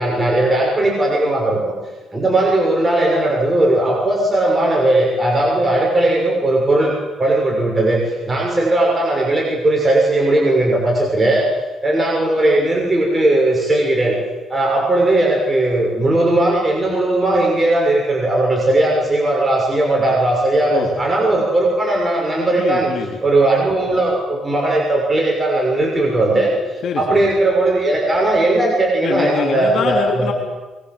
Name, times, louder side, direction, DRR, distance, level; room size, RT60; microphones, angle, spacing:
voice 1, 0.0-1.7 2.1-6.9 7.2-11.5 11.8-14.1 14.5-22.9 23.2-26.5 26.9-30.3, right 2 dB, 20° right, -1 dB, 6.5 m, -17 dB
voice 2, 22.5-23.2 26.8-27.3 29.0-30.3, left 7 dB, 65° left, 1 dB, 3.2 m, -24 dB
23.5 x 23.0 x 7.8 m, 1.2 s
cardioid pair, 90°, 0 cm